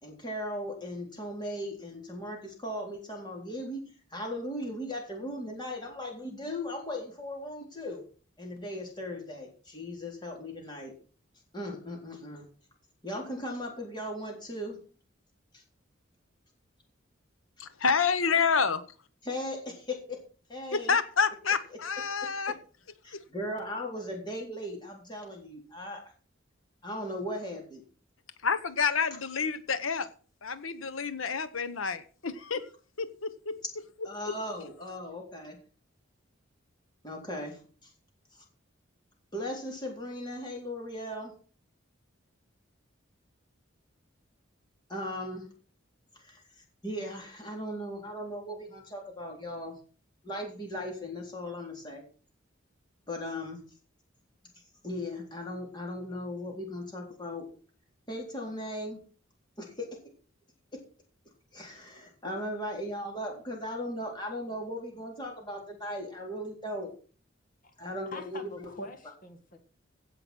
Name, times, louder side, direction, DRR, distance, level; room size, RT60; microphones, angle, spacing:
voice 1, 0.0-3.8 4.1-8.0 8.4-10.9 11.5-12.4 13.0-14.8 15.5-15.6 19.2-20.2 20.5-21.0 22.5-22.6 23.0-26.0 26.8-27.8 34.0-35.6 37.0-37.9 38.3-38.4 39.3-41.3 44.9-45.5 46.2-46.4 46.8-49.7 50.2-52.0 53.1-53.6 54.8-57.5 58.1-59.0 59.6-59.9 61.5-66.9 67.8-68.7, left 1 dB, 20° left, 3.8 m, -37 dB
voice 2, 17.6-18.8 20.7-22.5 28.4-30.1 30.4-32.6 33.0-33.6, left 5 dB, 85° left, 1.1 m, -28 dB
voice 3, 68.1-69.6, left 1 dB, 45° left, 1.7 m, -44 dB
16.0 x 5.9 x 6.2 m
head